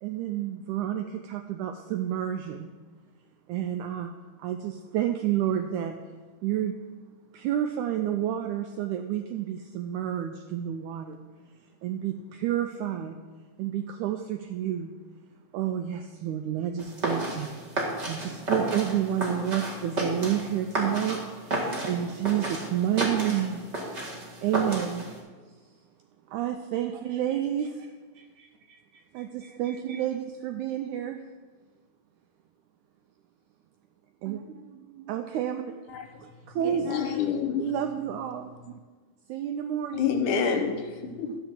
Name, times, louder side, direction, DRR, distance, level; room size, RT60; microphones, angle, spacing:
voice 1, 0.0-2.7 3.5-4.1 4.4-6.0 6.4-6.8 7.3-11.2 11.8-13.2 13.6-14.9 15.5-17.5 18.1-23.7 24.4-25.1 26.3-27.9 29.1-31.2 34.2-35.9 36.2-36.3 36.5-37.0 37.6-38.8 39.3-40.2 41.2-41.4, right 10 dB, 90° right, 6 dB, 1.7 m, -30 dB
sound 1, 16.8-25.2, right 1 dB, 30° right, 1.4 m, -32 dB
voice 2, 26.7-27.2 27.6-27.7 28.1-30.1 36.6-37.2, right 3 dB, 65° right, 1 dB, 2.5 m, -48 dB
voice 3, 36.8-37.7 39.9-41.3, left 7 dB, 75° left, 6 dB, 2.0 m, -27 dB
12.5 x 4.8 x 7.3 m, 1.4 s
omnidirectional pair, 4.0 m